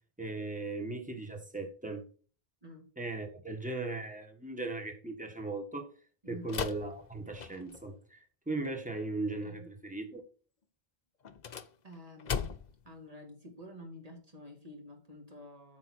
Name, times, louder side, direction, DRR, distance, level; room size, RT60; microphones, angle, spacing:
voice 1, 0.2-2.0 3.0-5.9 6.3-10.2, right 2 dB, 10° right, 1.5 m, -38 dB
voice 2, 6.2-6.6 9.4-9.7 11.8-12.5 12.8-15.8, left 1 dB, 35° right, 2.3 m, -49 dB
sound 1, 6.5-7.9 11.2-12.9, left 6 dB, 50° left, 0.7 m, -38 dB
9.1 x 6.0 x 4.4 m
omnidirectional pair, 1.0 m